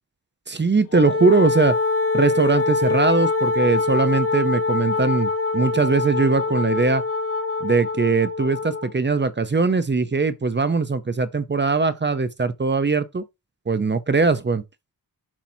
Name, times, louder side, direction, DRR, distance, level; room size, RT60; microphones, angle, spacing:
voice 1, 0.5-1.8 2.1-7.0 7.6-13.2 13.7-14.6, right 4 dB, 30° right, 0.7 m, -21 dB
Wind instrument woodwind instrument, 0.9-8.9, left 3 dB, 35° left, 0.6 m, -24 dB
7.2 x 5.7 x 2.8 m
wide cardioid pair, 125°, 38 cm